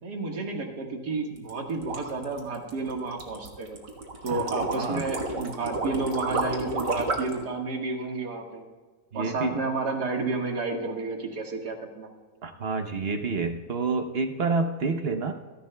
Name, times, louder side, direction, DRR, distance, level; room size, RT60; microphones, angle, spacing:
voice 1, 0.0-3.8 4.2-8.6 9.1-12.1, right 3 dB, 70° right, 2 dB, 2.1 m, -31 dB
sound 1, 1.4-7.4, right 2 dB, 90° right, 2.2 m, -31 dB
voice 2, 4.7-5.0 9.1-9.6 12.4-15.3, right 4 dB, 50° right, 6 dB, 0.8 m, -28 dB
27.5 x 11.0 x 2.3 m, 1.4 s
omnidirectional pair, 1.9 m